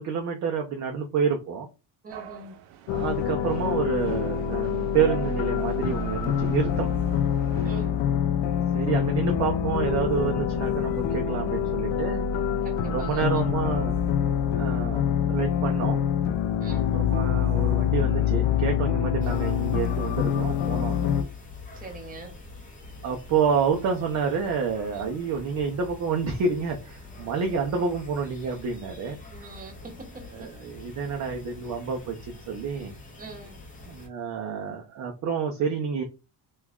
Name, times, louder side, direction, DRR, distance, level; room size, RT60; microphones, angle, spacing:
voice 1, 0.0-1.7 2.9-6.9 8.7-12.2 12.9-14.0 14.6-16.0 16.7-21.1 23.0-29.2 30.3-32.9 33.9-36.0, right 6 dB, 40° right, 0.5 m, -28 dB
voice 2, 2.0-2.6 7.6-8.0 12.6-13.5 16.6-17.0 21.7-22.4 24.9-25.1 29.3-30.5 33.2-33.6, right 3 dB, 20° right, 0.9 m, -43 dB
sound 1, 2.1-7.9, right 8 dB, 85° right, 0.7 m, -44 dB
sound 2, 2.9-21.2, left 9 dB, 80° left, 0.6 m, -25 dB
sound 3, 19.2-34.1, left 3 dB, 15° left, 0.6 m, -45 dB
3.1 x 2.3 x 3.5 m
cardioid pair, 175°, 46 cm